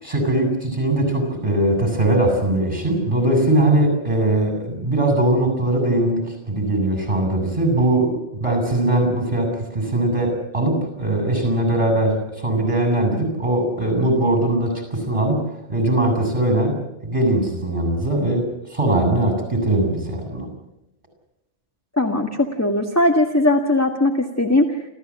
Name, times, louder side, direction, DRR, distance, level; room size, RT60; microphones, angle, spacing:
voice 1, 0.0-15.4 15.7-20.5, right 1 dB, 25° right, 5 dB, 7.9 m, -20 dB
voice 2, 22.0-24.8, left 1 dB, 15° left, 2 dB, 1.7 m, -19 dB
29.0 x 14.5 x 8.7 m, 0.90 s
omnidirectional pair, 1.2 m